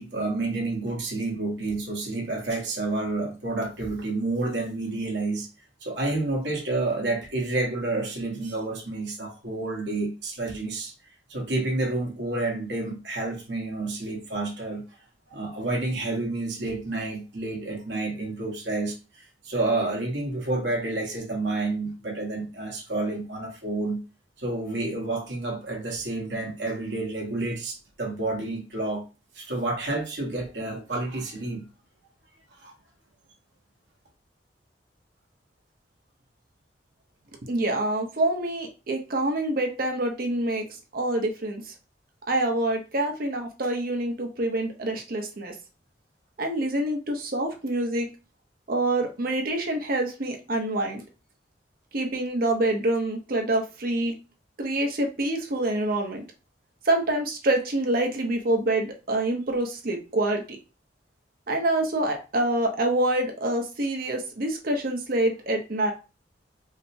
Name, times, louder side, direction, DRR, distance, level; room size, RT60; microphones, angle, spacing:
voice 1, 0.0-5.5 5.8-10.9 11.3-14.9 15.3-24.0 24.4-29.0 29.3-31.6 32.6-32.7, right 2 dB, 75° right, 1.4 m, -29 dB
voice 2, 37.5-40.6 40.9-41.6 42.3-45.5 46.4-48.1 48.7-51.0 51.9-54.1 54.6-56.2 56.9-60.4 61.5-65.9, right 1 dB, 55° right, 0.9 m, -26 dB
4.9 x 2.2 x 2.7 m
head